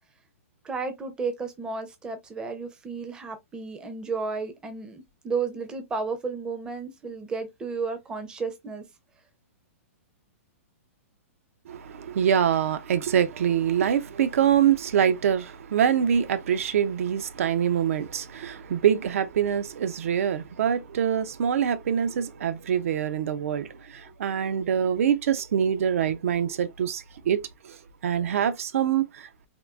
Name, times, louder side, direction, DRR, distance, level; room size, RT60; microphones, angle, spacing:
voice 1, 0.6-8.8 22.8-22.9 23.7-23.8 24.1-24.2, right 4 dB, 10° right, 0.5 m, -33 dB
voice 2, 11.7-29.3, right 8 dB, 70° right, 0.4 m, -25 dB
3.6 x 2.3 x 2.3 m
hypercardioid pair, 155°, 8 cm